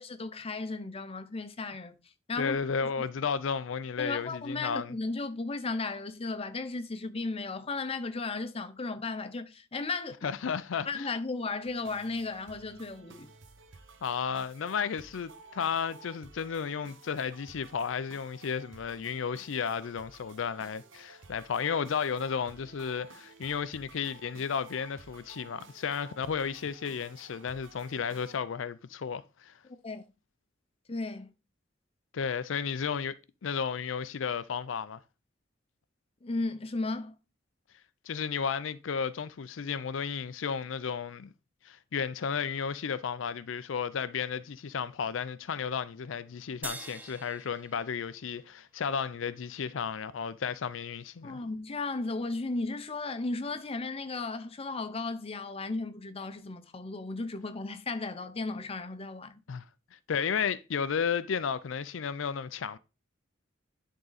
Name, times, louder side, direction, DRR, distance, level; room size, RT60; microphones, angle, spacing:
voice 1, 0.0-1.9 2.3-2.6 2.8-2.9 4.0-10.3 10.9-13.3 29.8-30.0 30.9-31.3 36.2-37.1 51.2-59.4, left 3 dB, 30° left, 0.7 m, -35 dB
voice 2, 2.4-4.9 10.2-11.1 14.0-29.5 32.1-33.2 33.4-35.0 38.0-41.3 41.6-51.4 59.5-59.6 59.9-62.8, left 6 dB, 90° left, 0.5 m, -33 dB
sound 1, 11.6-28.4, right 4 dB, 75° right, 0.9 m, -54 dB
sound 2, 46.6-49.2, right 2 dB, 10° right, 0.6 m, -45 dB
10.5 x 3.7 x 4.0 m
head